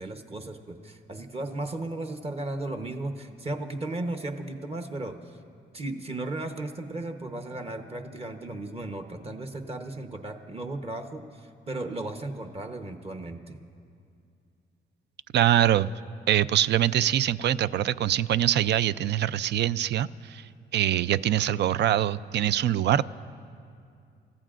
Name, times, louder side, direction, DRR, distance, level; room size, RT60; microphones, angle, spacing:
voice 1, 0.0-5.4 5.7-13.6, right 2 dB, 30° right, 5 dB, 1.0 m, -35 dB
voice 2, 15.3-15.9 16.3-20.5 20.7-23.0, right 11 dB, 60° right, 16 dB, 0.4 m, -24 dB
29.0 x 14.5 x 2.5 m, 2.4 s
cardioid pair, 90°, 20 cm